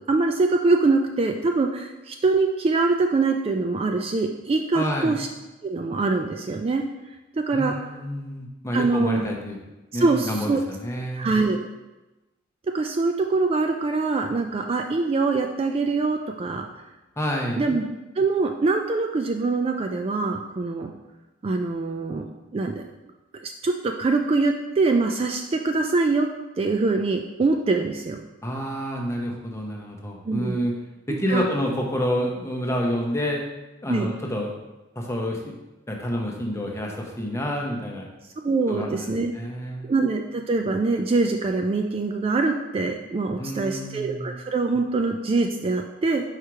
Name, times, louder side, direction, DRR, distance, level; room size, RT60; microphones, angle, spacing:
voice 1, 0.1-5.3 5.6-6.8 7.4-7.7 8.7-9.3 9.9-10.6 11.1-11.6 12.7-16.7 17.6-17.8 18.2-20.9 21.4-22.8 23.3-26.3 26.6-28.2 30.2-30.6 31.1-31.5 33.9-34.1 38.4-39.3 39.8-46.2, right 3 dB, 30° right, 4 dB, 0.3 m, -24 dB
voice 2, 4.7-5.1 7.5-9.6 9.9-11.4 17.2-17.6 28.4-30.7 31.1-33.4 33.8-34.5 34.9-35.5 35.9-38.1 38.7-40.0 43.4-44.3, equal, 15° left, 0 dB, 0.9 m, -28 dB
5.0 x 4.6 x 4.6 m, 1.1 s
head